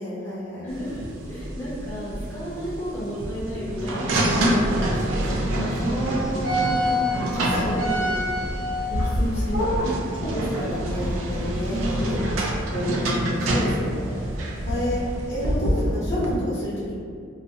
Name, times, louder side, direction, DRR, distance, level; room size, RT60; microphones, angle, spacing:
voice 1, 0.0-0.7 5.7-8.3 9.5-9.7 10.1-11.8 12.2-14.2 14.7-15.0 15.3-16.9, equal, 60° left, -9 dB, 0.8 m, -30 dB
voice 2, 0.6-6.6 7.1-7.8 8.9-9.9 11.6-12.5, equal, 15° left, -10 dB, 0.5 m, -33 dB
sound 1, 0.7-16.4, equal, 90° right, 0.4 m, -26 dB
2.5 x 2.0 x 2.6 m, 2.3 s
head